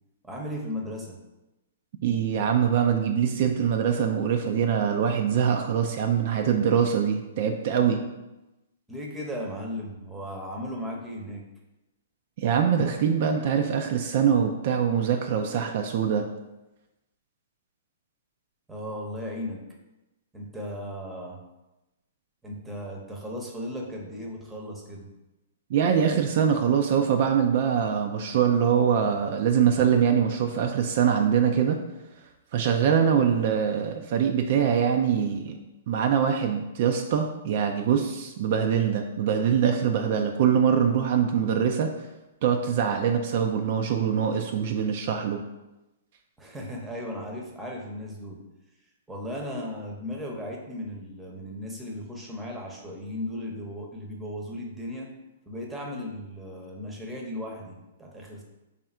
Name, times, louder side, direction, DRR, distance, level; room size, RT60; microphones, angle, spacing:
voice 1, 0.2-1.2 8.9-11.4 18.7-19.6 20.3-21.4 22.4-25.1 46.4-48.4 49.1-55.1 55.5-58.4, left 1 dB, 5° right, -1 dB, 0.8 m, -36 dB
voice 2, 2.0-8.0 12.4-16.3 25.7-31.8 32.5-41.9 42.4-45.4, right 7 dB, 55° right, 4 dB, 0.3 m, -23 dB
3.4 x 2.5 x 4.2 m, 1.0 s
hypercardioid pair, 125°, 0 cm